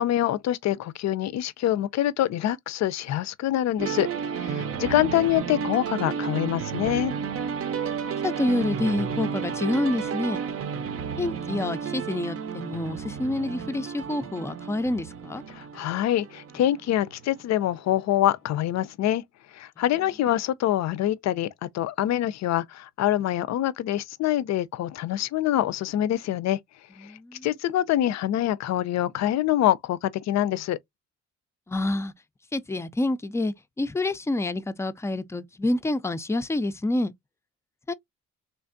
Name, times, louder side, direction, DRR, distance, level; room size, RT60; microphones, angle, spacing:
voice 1, 0.0-4.1 4.4-7.1 15.5-19.2 19.5-21.5 21.7-26.6 27.4-30.8, left 12 dB, 65° left, 0.5 m, -25 dB
sound 1, 3.8-17.5, right 7 dB, 50° right, 0.6 m, -32 dB
voice 2, 8.2-10.4 11.2-15.4 27.0-27.5 31.7-32.1 32.5-37.1 37.9-38.0, left 2 dB, 10° left, 0.4 m, -28 dB
3.4 x 3.1 x 2.5 m
cardioid pair, 90°, 30 cm